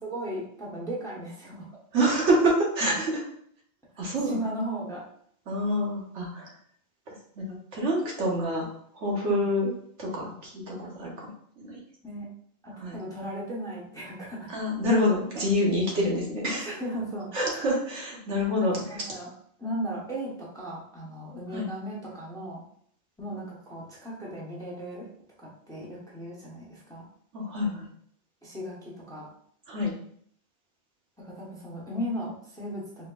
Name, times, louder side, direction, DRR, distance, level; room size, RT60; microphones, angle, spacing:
voice 1, 0.0-1.7 2.8-2.9 4.2-5.0 9.2-9.4 12.0-12.3 12.6-14.5 16.6-17.3 18.9-19.3 19.6-22.6 23.2-25.1 25.4-27.0 28.4-29.3 31.2-33.1, equal, 5° left, -5 dB, 0.8 m, -36 dB
voice 2, 1.9-3.1 4.0-4.4 5.5-6.5 7.1-7.5 7.7-8.7 8.9-9.7 10.0-11.8 12.8-13.0 14.5-16.7 17.3-19.0 21.5-21.7 27.3-27.9 29.7-29.9, equal, 85° right, -3 dB, 1.3 m, -27 dB
4.3 x 2.7 x 2.3 m, 0.63 s
omnidirectional pair, 1.1 m